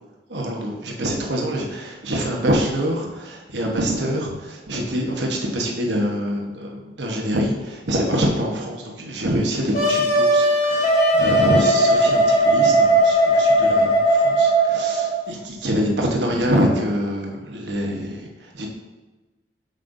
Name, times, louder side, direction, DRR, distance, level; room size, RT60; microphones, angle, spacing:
voice 1, 0.3-18.7, equal, 85° right, 0 dB, 1.1 m, -25 dB
Wind instrument woodwind instrument, 9.7-15.2, right 1 dB, 40° left, 1.5 m, -17 dB
7.7 x 5.3 x 2.7 m, 1.2 s
head